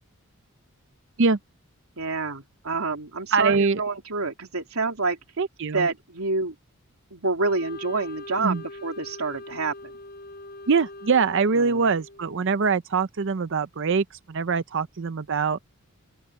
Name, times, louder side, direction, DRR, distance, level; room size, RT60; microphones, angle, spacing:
voice 1, 2.0-5.2 5.7-6.5 7.1-9.9 11.6-11.8, right 3 dB, 85° right, 3.2 m, -28 dB
voice 2, 3.3-3.8 5.4-5.9 8.4-8.6 10.7-15.6, right 5 dB, 60° right, 0.6 m, -23 dB
Wind instrument woodwind instrument, 7.4-12.6, left 2 dB, 45° left, 5.8 m, -42 dB
open air
head